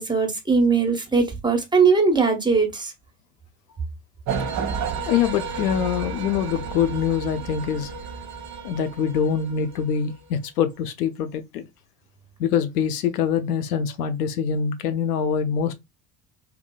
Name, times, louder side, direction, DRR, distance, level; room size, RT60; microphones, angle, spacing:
voice 1, 0.0-2.9, right 4 dB, 10° right, 1.2 m, -20 dB
sound 1, 4.3-10.3, right 5 dB, 35° right, 0.9 m, -32 dB
voice 2, 5.1-7.9 8.6-11.7 12.4-15.7, left 8 dB, 70° left, 0.7 m, -24 dB
3.5 x 3.2 x 2.3 m
figure-of-eight pair, 65°, 48 cm